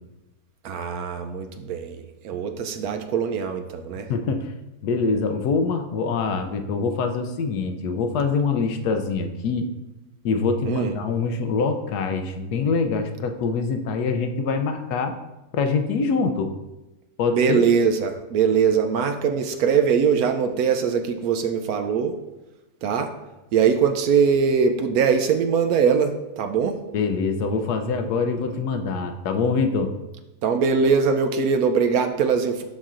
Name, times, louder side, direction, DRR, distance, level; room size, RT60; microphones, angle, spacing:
voice 1, 0.6-4.1 10.6-10.9 17.3-22.2 22.8-23.1 23.5-26.8 30.4-32.6, right 6 dB, 70° right, 6 dB, 1.0 m, -22 dB
voice 2, 4.1-4.5 4.8-9.7 10.2-15.2 15.5-16.5 17.2-17.7 26.9-30.0, left 4 dB, 75° left, 7 dB, 1.2 m, -24 dB
12.0 x 4.3 x 2.5 m, 1.0 s
omnidirectional pair, 1.7 m